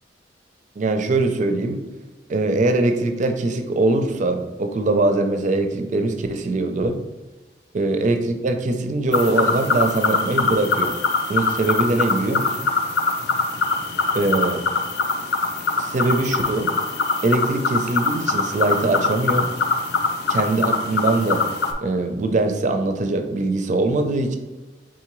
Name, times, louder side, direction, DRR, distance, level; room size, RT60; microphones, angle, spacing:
voice 1, 0.8-1.8 2.3-7.0 7.7-11.0 11.3-12.7 14.1-14.6 15.8-16.7 17.2-19.5 20.3-21.4 21.8-24.4, right 2 dB, 45° right, 7 dB, 0.4 m, -22 dB
sound 1, 9.1-21.7, left 4 dB, 65° left, 0.4 m, -23 dB
3.8 x 3.7 x 3.0 m, 1.2 s
head